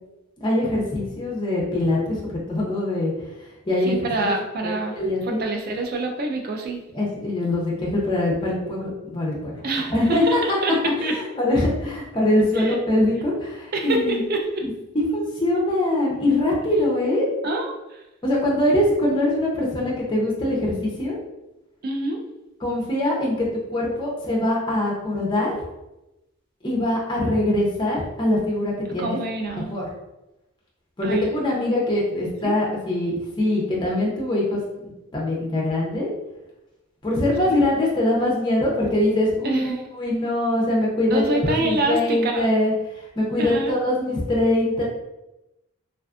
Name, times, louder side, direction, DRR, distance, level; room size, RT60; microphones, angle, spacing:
voice 1, 0.4-3.1 3.7-4.2 4.6-5.4 6.9-9.6 9.9-10.6 11.0-14.2 14.6-14.7 14.9-17.3 18.2-21.2 22.6-25.6 26.6-29.2 29.7-29.9 31.0-34.6 35.1-36.1 37.0-44.8, left 1 dB, 20° left, -3 dB, 0.5 m, -23 dB
voice 2, 3.8-4.9 5.2-6.8 9.6-10.7 11.0-11.1 12.5-12.8 13.7-14.6 17.4-18.0 21.8-22.2 29.0-29.7 31.0-31.3 32.4-32.5 39.4-39.8 41.0-42.5 43.4-43.7, right 2 dB, 40° right, 3 dB, 0.3 m, -26 dB
2.4 x 2.3 x 2.4 m, 0.96 s
head